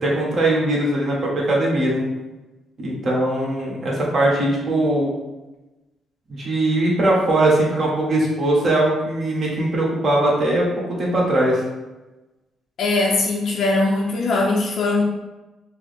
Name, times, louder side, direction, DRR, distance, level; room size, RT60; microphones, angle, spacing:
voice 1, 0.0-2.0 2.8-5.1 6.3-11.6, right 1 dB, 50° right, -4 dB, 1.4 m, -20 dB
voice 2, 12.8-15.0, left 2 dB, 65° left, -2 dB, 0.5 m, -20 dB
4.6 x 2.0 x 3.6 m, 1.1 s
cardioid pair, 90°, 0 cm